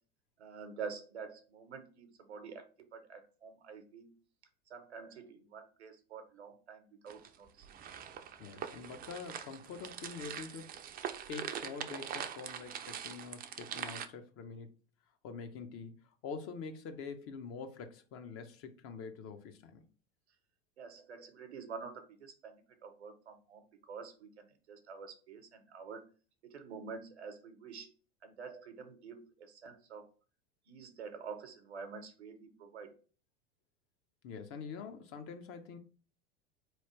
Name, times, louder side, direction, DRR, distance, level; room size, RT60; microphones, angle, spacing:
voice 1, 0.4-2.6 2.9-4.1 4.7-7.7 20.8-26.0 26.4-27.9 28.2-30.1 30.7-32.9, right 5 dB, 85° right, 0.9 m, -48 dB
sound 1, 7.1-14.1, right 9 dB, 30° right, 0.4 m, -43 dB
voice 2, 8.4-10.7 11.3-14.7 15.2-16.0 16.2-19.8 34.2-35.8, left 5 dB, 45° left, 0.8 m, -45 dB
4.1 x 3.1 x 3.0 m
hypercardioid pair, 90°, 32 cm